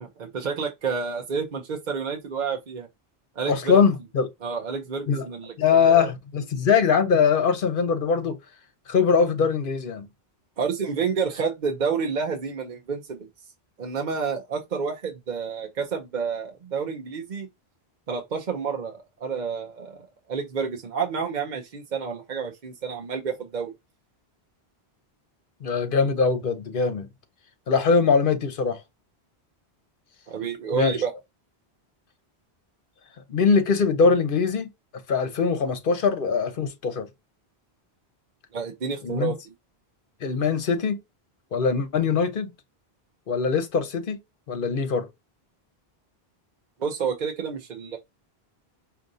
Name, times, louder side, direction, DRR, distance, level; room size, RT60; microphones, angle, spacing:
voice 1, 0.0-2.9 3.4-3.8 4.4-6.1 10.6-13.3 13.8-17.5 18.1-20.0 20.3-23.7 30.3-31.1 38.5-39.4 46.8-48.0, right 6 dB, 50° right, 0.8 m, -29 dB
voice 2, 3.5-4.3 5.1-5.3 5.6-8.4 8.9-10.1 25.6-27.1 27.7-28.8 30.7-30.9 33.3-34.7 35.1-37.1 39.0-39.3 40.2-41.0 41.5-42.5 43.3-44.2 44.5-45.1, left 5 dB, 55° left, 1.0 m, -22 dB
5.1 x 2.7 x 2.6 m
omnidirectional pair, 1.1 m